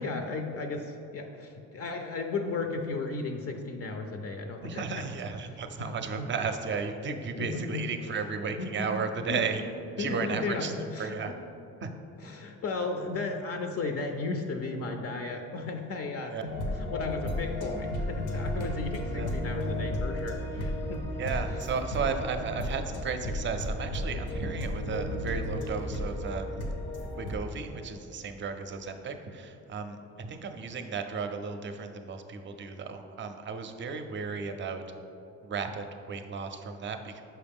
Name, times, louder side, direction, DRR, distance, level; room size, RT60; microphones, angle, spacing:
voice 1, 0.0-5.1 5.8-6.3 7.4-7.8 8.6-8.9 9.3-9.4 10.0-10.6 10.9-11.1 12.2-16.3 16.6-21.0, left 3 dB, 50° left, 4 dB, 0.5 m, -35 dB
voice 2, 4.6-9.6 10.0-11.3 11.8-11.9 16.3-16.4 19.1-19.3 21.2-26.6 27.1-34.8 35.4-37.2, right 5 dB, 40° right, 7 dB, 0.5 m, -34 dB
sound 1, 16.5-27.3, left 1 dB, 85° left, 0.9 m, -33 dB
5.7 x 4.9 x 3.5 m, 2.8 s
cardioid pair, 90°, 30 cm